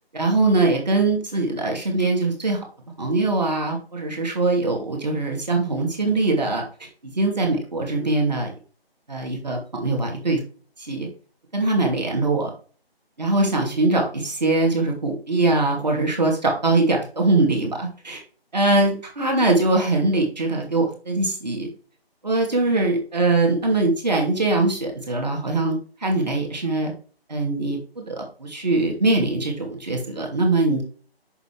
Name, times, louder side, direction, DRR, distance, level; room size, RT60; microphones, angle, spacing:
voice 1, 0.1-2.6 3.0-8.5 9.1-10.4 10.8-11.1 11.5-12.5 13.2-18.2 18.5-21.7 22.2-26.9 27.3-30.8, right 2 dB, 45° right, 1 dB, 2.7 m, -22 dB
7.7 x 6.0 x 3.3 m, 0.40 s
figure-of-eight pair, 175°, 31 cm